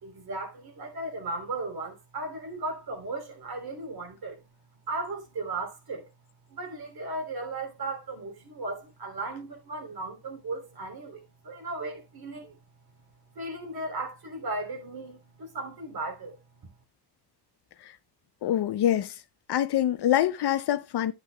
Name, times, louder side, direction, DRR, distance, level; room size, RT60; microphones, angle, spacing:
voice 1, 0.0-4.5 4.9-6.1 6.5-12.6 13.3-16.6, right 2 dB, 60° right, 3.0 m, -36 dB
voice 2, 18.4-19.2 19.5-21.1, left 11 dB, 70° left, 0.7 m, -25 dB
11.0 x 8.2 x 2.2 m
cardioid pair, 100°, 42 cm